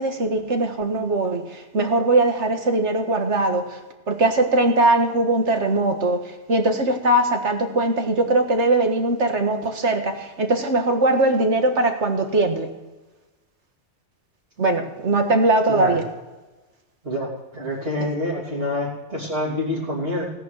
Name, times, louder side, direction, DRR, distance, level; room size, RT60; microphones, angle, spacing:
voice 1, 0.0-3.8 4.1-12.7 14.6-16.0, right 2 dB, 80° right, 4 dB, 2.0 m, -21 dB
voice 2, 15.7-16.0 17.0-20.2, left 1 dB, 55° right, -8 dB, 3.5 m, -27 dB
17.0 x 10.5 x 6.4 m, 1.1 s
omnidirectional pair, 1.2 m